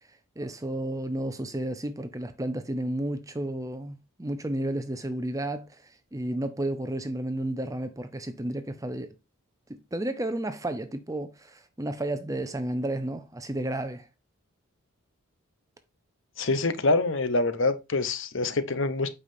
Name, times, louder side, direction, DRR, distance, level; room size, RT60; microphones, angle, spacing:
voice 1, 0.4-9.1 9.7-14.1, right 1 dB, 15° right, 0.6 m, -32 dB
voice 2, 16.4-19.1, left 3 dB, 55° left, 0.8 m, -25 dB
8.2 x 5.5 x 2.7 m
head